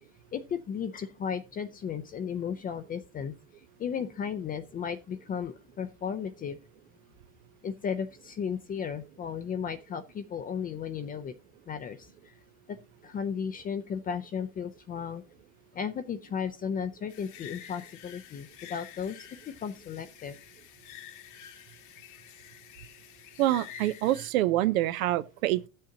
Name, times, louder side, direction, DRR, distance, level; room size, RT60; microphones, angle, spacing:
voice 1, 0.3-3.4 3.8-6.6 7.6-11.3 11.7-12.3 12.7-12.8 13.0-15.2 15.7-20.4, left 7 dB, 20° left, 0.4 m, -35 dB
sound 1, 17.1-24.3, left 10 dB, 45° left, 1.1 m, -49 dB
voice 2, 23.4-25.7, right 14 dB, 85° right, 0.6 m, -26 dB
13.0 x 6.5 x 2.8 m
supercardioid pair, 115°, 41 cm